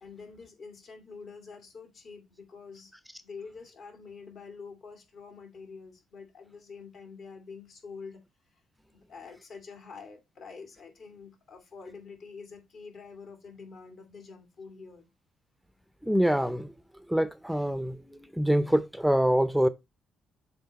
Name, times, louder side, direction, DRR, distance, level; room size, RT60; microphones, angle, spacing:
voice 1, 0.0-2.9 3.2-8.2 8.5-8.6 8.9-15.1, left 5 dB, 60° left, 2.3 m, -46 dB
voice 2, 16.0-16.7 17.1-18.0 18.3-19.7, equal, ahead, 0.5 m, -25 dB
6.8 x 3.9 x 4.0 m
cardioid pair, 90°, 0 cm